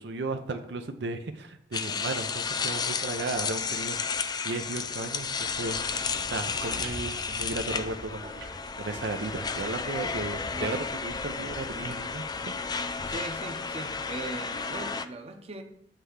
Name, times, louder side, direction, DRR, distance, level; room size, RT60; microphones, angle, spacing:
voice 1, 0.0-4.2 4.4-6.0 6.3-8.3 8.8-12.8, right 3 dB, 80° right, 0.6 m, -35 dB
sound 1, 1.7-15.0, left 5 dB, 25° left, 0.4 m, -33 dB
sound 2, 5.3-13.2, right 1 dB, 60° right, 1.3 m, -44 dB
voice 2, 13.0-15.6, right 2 dB, 35° right, 0.8 m, -39 dB
7.5 x 3.4 x 6.4 m
head